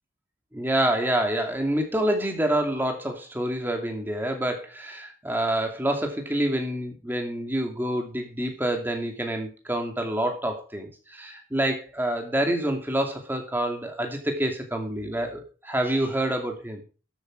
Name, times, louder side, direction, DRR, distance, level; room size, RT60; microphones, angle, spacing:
voice 1, 0.5-16.8, right 1 dB, 10° right, 3 dB, 2.4 m, -27 dB
13.0 x 8.1 x 4.7 m, 0.35 s
head